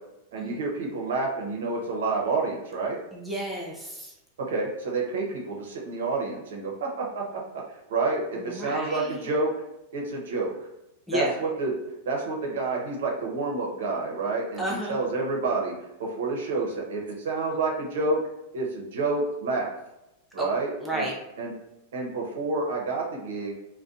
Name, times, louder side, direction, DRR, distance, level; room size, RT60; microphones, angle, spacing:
voice 1, 0.3-3.0 4.4-9.5 9.9-10.5 11.1-11.7 12.0-15.7 16.0-18.2 18.5-19.7 20.3-21.1 21.4-21.5 21.9-23.5, right 3 dB, 80° right, -1 dB, 0.7 m, -29 dB
voice 2, 3.1-4.1 8.4-9.3 11.1-11.3 14.6-15.0 20.4-20.5 20.8-21.2, right 1 dB, ahead, -5 dB, 0.3 m, -32 dB
2.6 x 2.2 x 2.4 m, 0.91 s
supercardioid pair, 175°, 0 cm